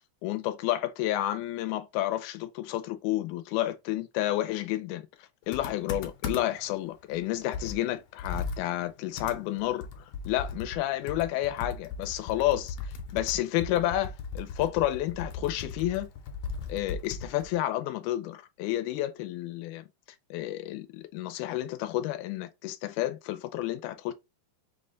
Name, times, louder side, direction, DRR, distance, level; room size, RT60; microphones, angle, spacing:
voice 1, 0.2-5.1 5.5-16.1 16.7-19.9 20.3-24.1, left 14 dB, 85° left, 2.0 m, -30 dB
Computer keyboard, 5.5-6.7 7.1-7.2 7.5-10.8 11.1-17.6, left 4 dB, 70° left, 1.8 m, -37 dB
5.6 x 2.2 x 3.7 m
omnidirectional pair, 3.4 m